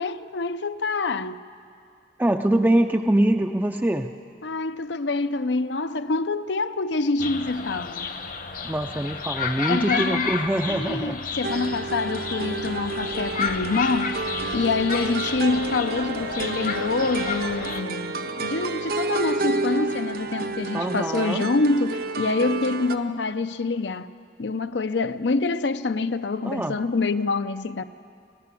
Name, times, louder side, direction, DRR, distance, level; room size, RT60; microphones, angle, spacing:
voice 1, 0.0-1.4 4.4-8.1 9.7-10.3 10.7-14.2 14.5-24.1 24.4-27.8, left 3 dB, 75° left, 0.6 m, -26 dB
voice 2, 2.2-4.1 8.6-11.2 20.7-21.5 26.4-26.8, right 1 dB, 10° right, 0.4 m, -23 dB
sound 1, 7.2-17.8, left 5 dB, 50° left, 1.0 m, -31 dB
sound 2, 11.4-23.0, right 3 dB, 55° right, 0.7 m, -30 dB
28.5 x 12.0 x 8.4 m
head